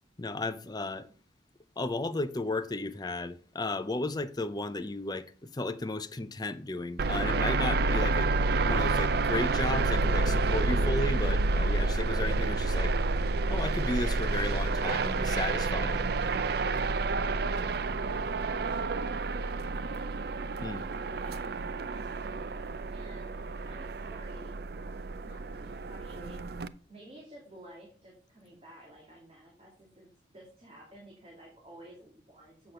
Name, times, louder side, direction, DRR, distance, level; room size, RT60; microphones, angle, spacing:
voice 1, 0.2-1.1 1.8-8.3 8.6-13.0 13.5-16.0 20.6-20.8, left 2 dB, 20° left, 0.5 m, -34 dB
sound 1, 7.0-26.7, right 3 dB, 55° right, 0.5 m, -29 dB
voice 2, 17.9-20.2 20.7-22.4 22.9-26.4 26.9-32.7, right 1 dB, 30° right, 2.5 m, -53 dB
8.2 x 5.9 x 5.3 m
head